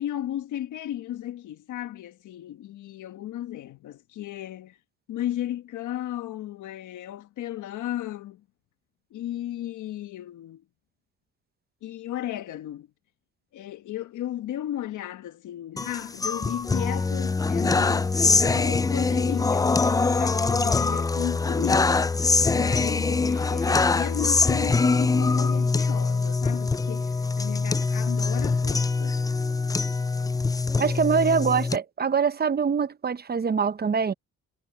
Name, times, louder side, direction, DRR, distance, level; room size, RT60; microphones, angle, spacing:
voice 1, 0.0-4.8 5.1-8.4 9.1-10.6 11.8-12.9 13.5-21.9 22.5-29.2, left 12 dB, 80° left, 1.4 m, -35 dB
sound 1, 15.8-31.8, left 4 dB, 10° left, 0.4 m, -23 dB
voice 2, 30.8-34.1, right 6 dB, 30° right, 0.8 m, -24 dB
cardioid pair, 90°, 30 cm